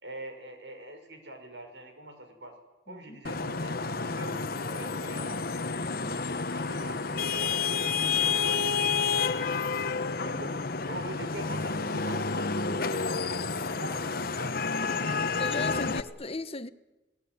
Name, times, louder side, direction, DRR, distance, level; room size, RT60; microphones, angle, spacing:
voice 1, 0.0-2.5 2.9-5.4 6.0-7.6 8.1-9.6 10.2-10.6 10.8-13.5 13.8-14.6 15.7-16.1, right 1 dB, 90° right, 6.6 m, -44 dB
voice 2, 2.9-3.2 5.8-6.2 15.2-16.7, left 3 dB, 35° left, 1.0 m, -38 dB
Vehicle horn car horn honking / Traffic noise roadway noise, 3.2-16.0, left 5 dB, 60° left, 1.3 m, -30 dB
Trumpet, 3.9-8.4, right 1 dB, 15° right, 6.2 m, -57 dB
29.5 x 19.5 x 9.7 m
head